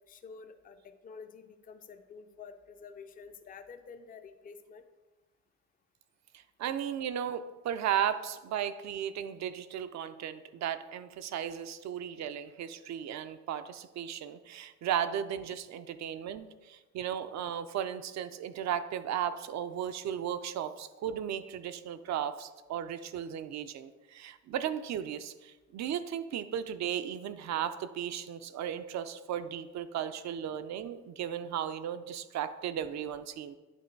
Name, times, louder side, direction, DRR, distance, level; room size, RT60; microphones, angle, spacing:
voice 1, 0.0-4.8, left 5 dB, 30° left, 8 dB, 0.4 m, -49 dB
voice 2, 6.6-33.5, right 9 dB, 65° right, 11 dB, 0.5 m, -35 dB
8.8 x 3.0 x 4.5 m, 1.2 s
cardioid pair, 90°, 30 cm